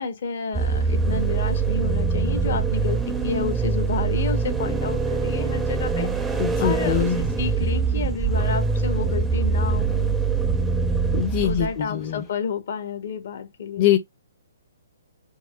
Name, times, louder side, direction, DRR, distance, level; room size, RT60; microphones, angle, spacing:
voice 1, 0.0-10.2 11.4-14.0, left 5 dB, 60° left, 0.8 m, -31 dB
sound 1, 0.5-11.8, right 4 dB, 10° right, 0.5 m, -23 dB
voice 2, 6.4-7.1 11.1-12.2 13.8-14.0, left 10 dB, 35° left, 0.6 m, -23 dB
4.6 x 2.0 x 2.3 m
hypercardioid pair, 140°, 0 cm